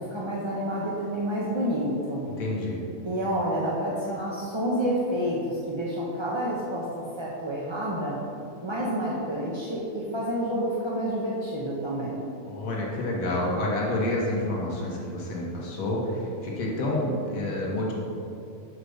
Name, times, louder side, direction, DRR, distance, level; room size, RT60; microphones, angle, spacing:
voice 1, 0.0-2.3 3.0-8.2 8.6-12.2, equal, 30° right, -5 dB, 0.5 m, -29 dB
voice 2, 2.4-2.8 12.5-17.9, left 1 dB, 80° left, -3 dB, 1.5 m, -28 dB
4.9 x 4.9 x 6.3 m, 2.6 s
omnidirectional pair, 1.4 m